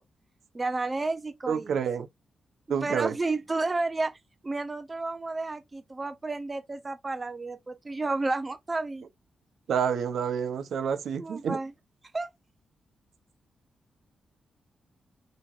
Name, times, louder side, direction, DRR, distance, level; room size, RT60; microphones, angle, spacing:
voice 1, 0.5-1.8 2.8-4.2 4.4-9.0 11.2-11.7 12.1-12.3, right 3 dB, 20° right, 0.6 m, -31 dB
voice 2, 1.5-2.1 2.7-3.1 9.7-11.6, right 7 dB, 75° right, 0.8 m, -28 dB
6.6 x 3.0 x 2.5 m
wide cardioid pair, 145°, 0 cm